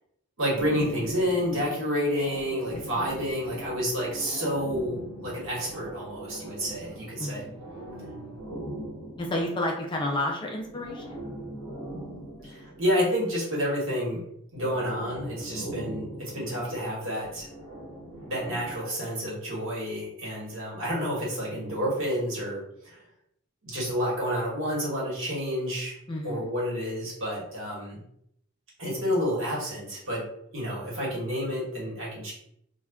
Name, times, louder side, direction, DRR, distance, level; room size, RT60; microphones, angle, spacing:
voice 1, 0.4-7.5 12.4-14.2 14.5-17.5 18.3-23.0 23.6-25.9 26.2-28.0 28.8-30.2 30.5-32.3, equal, 60° right, -5 dB, 1.1 m, -29 dB
sound 1, 0.5-10.1 10.6-13.2 14.5-18.8, right 1 dB, 90° right, 0.9 m, -40 dB
voice 2, 2.7-3.1 7.2-7.7 9.2-11.2 26.1-26.5, left 1 dB, 20° left, 0 dB, 0.3 m, -31 dB
2.4 x 2.2 x 3.4 m, 0.73 s
head